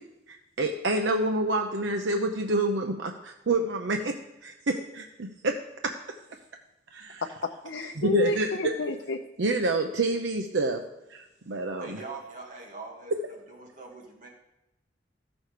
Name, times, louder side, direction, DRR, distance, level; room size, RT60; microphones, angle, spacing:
voice 1, 0.3-4.2 4.4-5.6 5.8-5.9 6.9-7.2 8.0-8.7 9.4-10.8 11.1-12.0, right 2 dB, 75° right, 4 dB, 0.7 m, -28 dB
voice 2, 7.2-9.2, left 2 dB, 85° left, 2 dB, 0.6 m, -31 dB
voice 3, 11.8-14.3, right 3 dB, 45° right, 0 dB, 1.8 m, -43 dB
14.0 x 6.3 x 4.9 m, 0.92 s
head